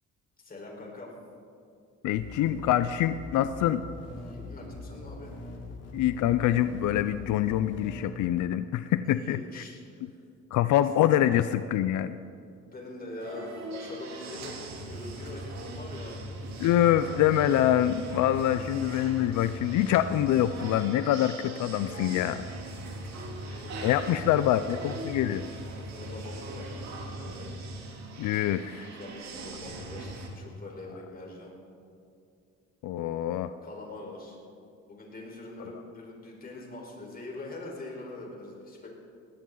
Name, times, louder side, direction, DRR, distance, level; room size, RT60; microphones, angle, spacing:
voice 1, 0.4-1.1 4.2-5.4 9.1-10.1 10.8-10.9 12.6-16.2 18.6-18.9 23.1-24.3 25.4-26.8 28.9-31.5 33.6-34.4 34.9-38.9, left 2 dB, 30° left, -1 dB, 4.5 m, -43 dB
voice 2, 2.0-3.8 5.9-9.6 10.5-12.2 16.6-22.4 23.5-25.4 28.2-28.9 32.8-33.5, left 12 dB, 85° left, 12 dB, 0.6 m, -25 dB
sound 1, 2.1-8.0, left 2 dB, 60° left, 3.4 m, -42 dB
sound 2, 13.2-30.3, right 1 dB, 65° right, 3.2 m, -40 dB
20.5 x 17.0 x 3.9 m, 2.5 s
cardioid pair, 120°, 29 cm